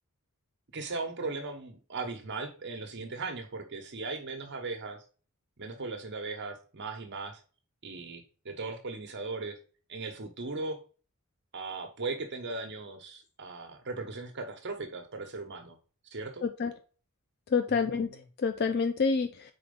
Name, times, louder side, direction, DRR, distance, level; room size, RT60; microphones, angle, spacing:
voice 1, 0.7-5.0 5.6-7.4 7.8-9.6 9.9-10.8 11.5-15.8 16.1-16.5 17.7-18.2, right 3 dB, 55° right, 4 dB, 1.0 m, -38 dB
voice 2, 16.4-16.7 17.5-18.1 18.4-19.5, left 5 dB, 50° left, 9 dB, 0.4 m, -27 dB
4.3 x 4.3 x 5.2 m, 0.38 s
head